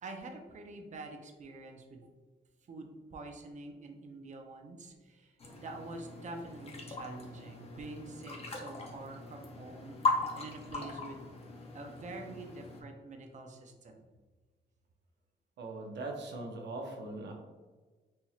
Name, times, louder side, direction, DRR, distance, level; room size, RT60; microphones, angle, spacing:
voice 1, 0.0-2.1 2.7-5.4 5.6-11.3 11.7-14.0, right 2 dB, 40° right, 3 dB, 0.6 m, -46 dB
sound 1, 5.4-12.8, left 3 dB, 35° left, 0.7 m, -39 dB
voice 2, 15.6-17.3, right 2 dB, 75° right, 1 dB, 0.8 m, -40 dB
4.3 x 2.9 x 2.4 m, 1.3 s
cardioid pair, 100°, 18 cm